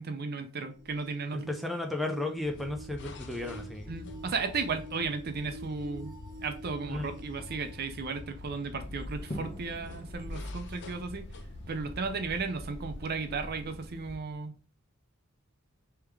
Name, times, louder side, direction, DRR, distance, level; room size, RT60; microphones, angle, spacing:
voice 1, 0.0-1.5 3.9-6.1 6.4-11.2 11.7-14.5, right 4 dB, 45° right, 8 dB, 0.6 m, -35 dB
sound 1, 0.7-8.4 9.1-9.2 10.2-10.3, right 1 dB, 15° right, 0.9 m, -48 dB
voice 2, 1.3-3.9 6.9-7.1, left 2 dB, ahead, 2 dB, 0.4 m, -34 dB
sound 2, 2.3-14.5, left 2 dB, 55° left, 0.5 m, -47 dB
sound 3, 8.8-14.2, equal, 30° left, 0.9 m, -44 dB
3.4 x 3.4 x 3.2 m, 0.38 s
head